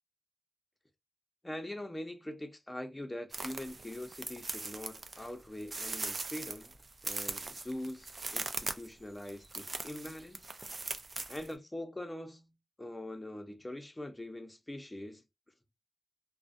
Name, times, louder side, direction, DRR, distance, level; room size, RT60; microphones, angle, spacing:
voice 1, 1.4-6.7 7.0-10.5 11.3-12.5 12.8-15.2, left 1 dB, 20° left, 0.6 m, -43 dB
sound 1, 3.3-11.5, right 3 dB, 45° right, 0.4 m, -40 dB
2.4 x 2.1 x 2.4 m
cardioid pair, 45°, 0 cm